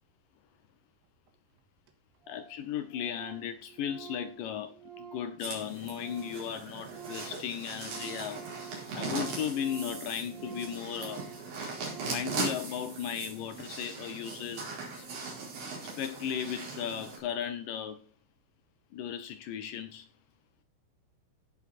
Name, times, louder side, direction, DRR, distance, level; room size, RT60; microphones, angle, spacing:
Organ, 1.3-1.4 1.6-1.7 1.9-2.0 2.2-2.6 2.9-6.5 6.8-12.4, right 8 dB, 85° right, 3.7 m, -48 dB
voice 1, 2.3-8.5 8.9-11.3 12.1-15.1 15.8-18.1 18.9-20.1, left 9 dB, 85° left, 1.9 m, -36 dB
sound 1, 5.4-17.2, right 4 dB, 65° right, 6.4 m, -39 dB
16.5 x 7.1 x 4.2 m
omnidirectional pair, 4.9 m